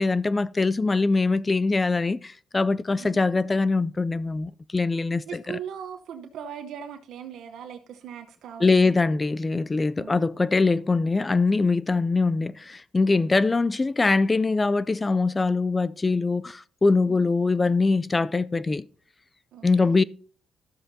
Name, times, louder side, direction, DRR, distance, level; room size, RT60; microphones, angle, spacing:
voice 1, 0.0-5.6 8.6-18.9 19.6-20.0, left 3 dB, 25° left, 0.3 m, -23 dB
voice 2, 5.3-9.0 9.9-10.3 13.1-13.3 17.1-17.3 19.5-20.0, right 8 dB, 75° right, 0.9 m, -40 dB
12.5 x 7.7 x 2.7 m
cardioid pair, 90°, 0 cm